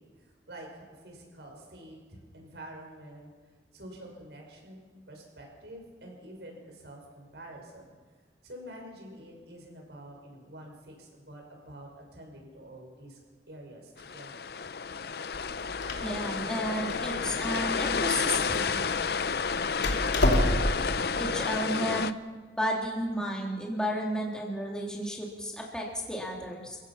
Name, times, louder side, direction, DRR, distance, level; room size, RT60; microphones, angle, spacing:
voice 1, 0.0-3.3 3.7-7.9 8.4-13.2 13.5-14.5, right 1 dB, 75° right, 1 dB, 6.5 m, -47 dB
sound 1, 14.0-22.1, left 5 dB, 60° left, 0.6 m, -31 dB
Door, 15.3-20.9, left 1 dB, 80° left, 3.0 m, -30 dB
voice 2, 16.0-18.8 21.2-22.1 22.6-26.8, equal, 5° left, -3 dB, 3.2 m, -32 dB
29.5 x 15.5 x 5.9 m, 1.4 s
head